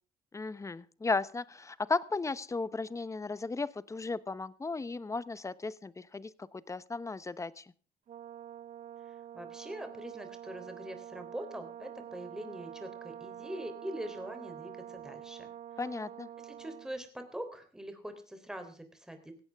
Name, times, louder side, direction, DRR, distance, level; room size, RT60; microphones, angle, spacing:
voice 1, 0.3-7.7 15.8-16.3, left 3 dB, 20° left, 17 dB, 0.9 m, -35 dB
Brass instrument, 8.1-17.0, right 11 dB, 45° right, 0.6 m, -47 dB
voice 2, 9.1-15.5 16.4-19.4, right 1 dB, 5° right, 7 dB, 3.5 m, -43 dB
16.5 x 16.0 x 3.5 m, 0.40 s
cardioid pair, 110°, 17 cm